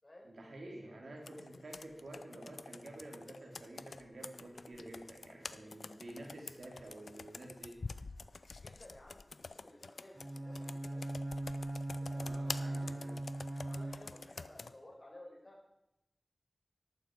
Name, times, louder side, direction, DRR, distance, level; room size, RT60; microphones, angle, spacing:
voice 1, 0.2-7.8 12.1-13.2, right 1 dB, 90° right, 1 dB, 2.9 m, -50 dB
voice 2, 0.8-1.2 5.6-6.0 8.6-11.3 12.0-12.9 13.6-15.6, left 1 dB, 45° left, -1 dB, 5.4 m, -56 dB
Computer keyboard, 1.2-14.7, left 4 dB, 90° left, 0.5 m, -48 dB
Bowed string instrument, 10.1-14.4, right 1 dB, 50° right, 2.1 m, -40 dB
14.0 x 12.0 x 4.7 m, 0.85 s
wide cardioid pair, 45°, 0 cm